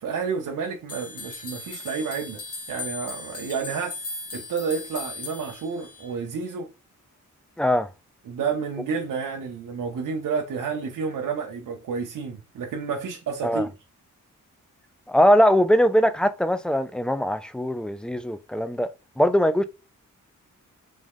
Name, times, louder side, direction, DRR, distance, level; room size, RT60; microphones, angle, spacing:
voice 1, 0.0-2.4 2.7-4.0 4.3-6.7 8.3-13.7, right 5 dB, 80° right, 0.7 m, -30 dB
sound 1, 0.9-6.1, left 3 dB, 50° left, 1.3 m, -38 dB
voice 2, 7.6-7.9 13.4-13.7 15.1-18.9 19.2-19.6, equal, 5° left, 0.4 m, -21 dB
3.6 x 3.1 x 3.5 m
cardioid pair, 70°, 32 cm